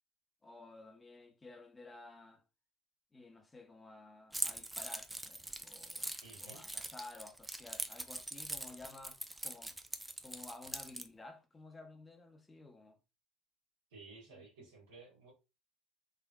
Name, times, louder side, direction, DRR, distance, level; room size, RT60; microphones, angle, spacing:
voice 1, 0.4-2.4 3.1-9.8 10.2-13.0 14.3-14.7, left 2 dB, 20° left, 0.8 m, -54 dB
Keys jangling, 4.3-11.1, right 1 dB, 10° right, 0.5 m, -42 dB
voice 2, 6.2-6.6 13.9-15.3, right 3 dB, 80° right, 1.7 m, -55 dB
3.6 x 3.0 x 2.2 m
hypercardioid pair, 70°, 0 cm